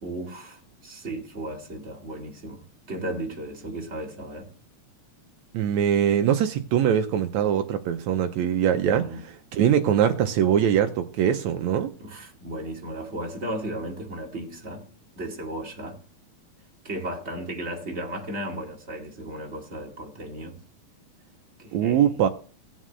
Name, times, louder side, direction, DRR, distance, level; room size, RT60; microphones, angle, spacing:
voice 1, 0.0-4.5 8.8-9.2 12.0-14.8 15.2-16.0 16.8-20.6 21.6-22.3, right 1 dB, 25° right, 1.8 m, -35 dB
voice 2, 5.5-9.1 9.5-11.9 21.7-22.3, right 9 dB, 85° right, 1.6 m, -22 dB
18.5 x 7.5 x 3.1 m
omnidirectional pair, 4.1 m